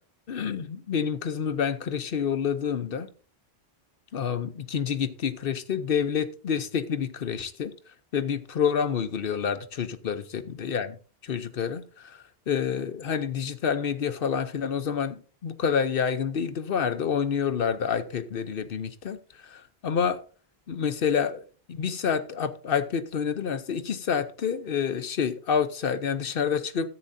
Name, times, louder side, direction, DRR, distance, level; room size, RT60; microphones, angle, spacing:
voice 1, 0.3-3.1 4.1-7.7 8.1-11.0 11.2-20.2 20.7-26.9, left 7 dB, 60° left, 0.9 m, -28 dB
14.0 x 8.8 x 2.6 m
omnidirectional pair, 1.1 m